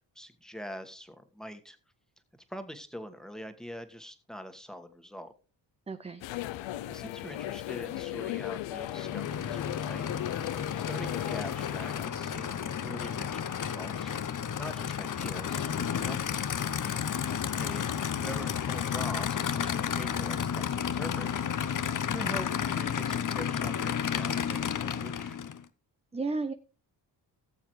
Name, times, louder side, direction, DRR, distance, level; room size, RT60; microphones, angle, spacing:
voice 1, 0.0-1.8 2.5-5.3 6.9-10.0 10.3-14.2 14.4-16.2 17.6-17.8 18.1-21.3 22.1-25.4, equal, ahead, 7 dB, 1.5 m, -44 dB
voice 2, 5.9-6.2 26.1-26.5, right 3 dB, 15° right, 10 dB, 0.6 m, -33 dB
sound 1, 6.2-12.1, left 14 dB, 90° left, 0.6 m, -37 dB
Aircraft / Idling, 8.7-25.6, left 8 dB, 45° left, 0.8 m, -32 dB
18.0 x 7.2 x 3.2 m, 0.35 s
cardioid pair, 70°, 44 cm